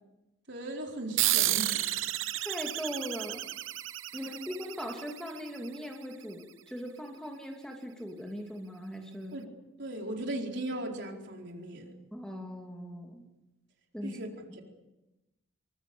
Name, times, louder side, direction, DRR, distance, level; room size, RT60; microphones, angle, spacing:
voice 1, 0.5-2.0 9.3-9.5 9.8-11.9 14.0-14.3 14.5-14.6, right 1 dB, 65° right, 1 dB, 4.4 m, -37 dB
sound 1, 1.2-6.1, right 14 dB, 90° right, 0.9 m, -32 dB
voice 2, 2.4-3.5 4.1-9.3 12.1-13.3 13.9-14.2, equal, 5° left, 2 dB, 2.8 m, -40 dB
26.0 x 23.5 x 7.0 m, 0.99 s
head